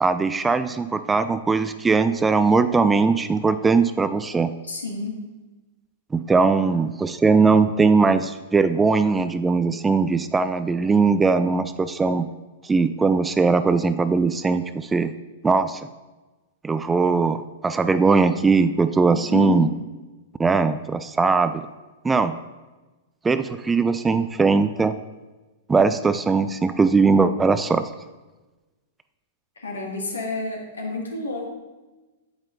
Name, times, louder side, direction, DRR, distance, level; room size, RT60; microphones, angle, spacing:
voice 1, 0.0-4.5 6.1-12.3 12.6-15.1 15.4-15.9 16.6-19.7 20.4-21.7 22.0-22.4 23.2-24.9 25.7-27.9, right 4 dB, 10° right, 11 dB, 0.3 m, -20 dB
voice 2, 4.6-5.2 19.1-19.7 29.6-31.5, left 2 dB, 75° left, 0 dB, 2.0 m, -29 dB
8.9 x 8.8 x 2.6 m, 1.2 s
figure-of-eight pair, 100°, 0 cm